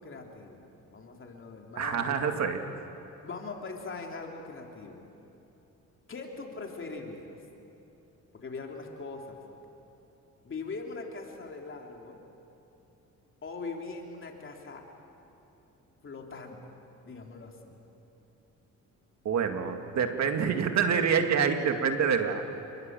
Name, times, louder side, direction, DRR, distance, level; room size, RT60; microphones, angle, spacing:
voice 1, 0.0-2.4 3.2-5.1 6.1-7.4 8.3-9.4 10.4-12.2 13.4-14.9 16.0-16.7 17.0-17.8, left 3 dB, 40° left, 1 dB, 3.4 m, -41 dB
voice 2, 1.8-2.6 19.2-22.5, right 6 dB, 65° right, 6 dB, 2.1 m, -27 dB
29.0 x 21.0 x 7.6 m, 2.9 s
cardioid pair, 90°, 30 cm